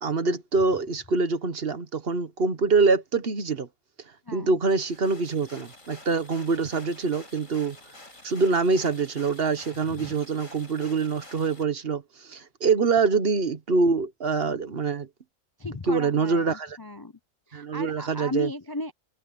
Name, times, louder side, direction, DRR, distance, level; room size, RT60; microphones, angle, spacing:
voice 1, 0.0-3.7 4.3-7.8 8.2-15.1 15.9-16.8 17.5-18.5, right 4 dB, 50° right, 1.3 m, -25 dB
voice 2, 4.3-4.6 9.9-10.1 15.6-17.1 17.5-18.9, left 1 dB, 25° left, 0.6 m, -35 dB
sound 1, 4.7-11.6, left 2 dB, 75° left, 5.8 m, -49 dB
omnidirectional pair, 1.4 m